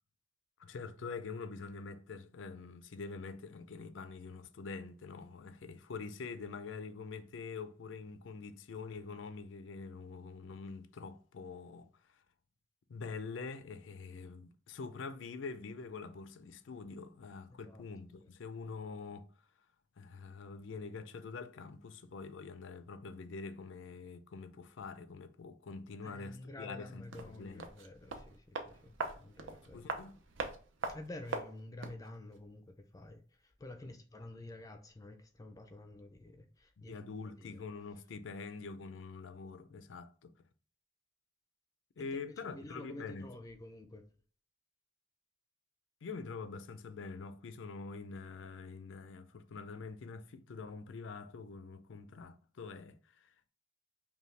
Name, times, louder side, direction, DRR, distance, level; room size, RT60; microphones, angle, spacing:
voice 1, 0.6-12.2 12.9-19.3 20.0-27.7 29.7-30.2 36.8-40.3 42.0-43.3 46.0-53.5, left 4 dB, 80° left, 0.4 m, -45 dB
voice 2, 17.5-17.8 18.2-18.3 26.0-29.8 30.9-37.0 37.2-37.6 42.0-42.1 42.4-44.0, left 1 dB, 20° left, 0.4 m, -50 dB
sound 1, 27.1-32.1 32.3-32.4, right 3 dB, 85° right, 0.6 m, -42 dB
5.4 x 2.3 x 3.2 m
head